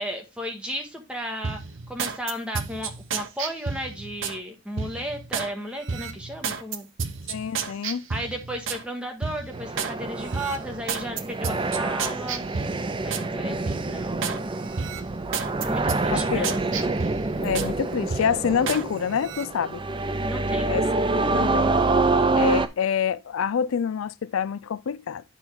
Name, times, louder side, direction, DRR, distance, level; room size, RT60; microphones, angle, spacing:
voice 1, 0.0-1.6 1.9-6.9 8.1-12.4 13.0-14.1 15.6-16.5 20.2-20.8, equal, 5° right, 1.4 m, -34 dB
sound 1, 1.4-4.4 4.8-5.5 5.9-8.8 9.2-9.9 10.3-13.3 13.7-14.4 14.7-17.7 18.1-18.8 19.2-19.4, right 5 dB, 60° right, 0.7 m, -32 dB
voice 2, 7.3-8.0 16.1-16.9 17.4-19.8 20.7-20.9 21.3-21.8 22.3-25.2, left 7 dB, 70° left, 0.4 m, -27 dB
sound 2, 9.5-22.7, right 3 dB, 25° right, 0.4 m, -26 dB
9.7 x 4.5 x 3.5 m
head